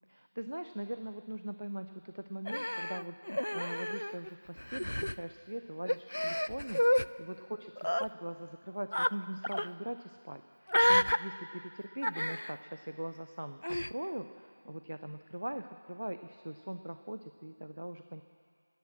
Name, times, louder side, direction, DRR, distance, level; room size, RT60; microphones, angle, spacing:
voice 1, 0.1-18.2, right 1 dB, 60° right, 9 dB, 0.6 m, -42 dB
Human voice, 2.5-4.3 4.6-5.2 5.9-7.1 7.8-8.1 8.9-9.1 9.4-9.7 10.7-11.2 12.0-12.6 13.6-13.9, equal, 80° left, 0.4 m, -30 dB
17.0 x 10.5 x 7.5 m, 2.3 s
figure-of-eight pair, 175°, 0 cm